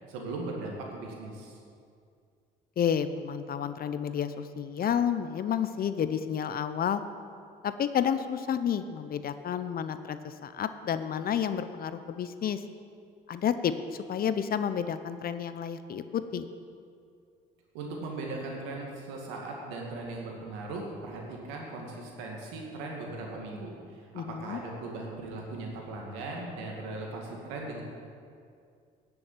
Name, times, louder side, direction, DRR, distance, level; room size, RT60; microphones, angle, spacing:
voice 1, 0.0-1.6 17.7-27.8, right 2 dB, 85° right, 0 dB, 2.2 m, -38 dB
voice 2, 2.8-7.0 7.6-12.6 13.3-13.7 14.1-16.4 24.1-24.6, left 8 dB, 50° left, 11 dB, 0.7 m, -30 dB
9.9 x 7.1 x 8.9 m, 2.3 s
supercardioid pair, 70°, 19 cm